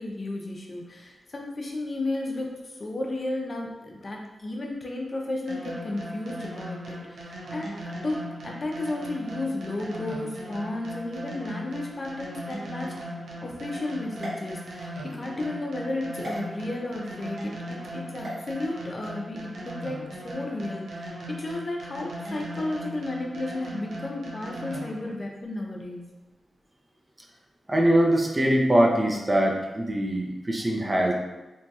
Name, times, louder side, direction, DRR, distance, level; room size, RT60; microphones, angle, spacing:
voice 1, 0.0-7.7 8.0-12.9 13.4-17.6 17.9-26.0, left 2 dB, 45° left, 0 dB, 0.5 m, -33 dB
sound 1, 5.5-25.1, equal, 90° right, 0.5 m, -38 dB
sound 2, 14.2-15.2 16.2-16.4 18.2-18.4, equal, 55° right, 1.2 m, -38 dB
voice 2, 27.7-31.1, right 1 dB, 25° right, 0 dB, 0.5 m, -22 dB
3.0 x 2.7 x 2.3 m, 1.1 s
cardioid pair, 70°, 0 cm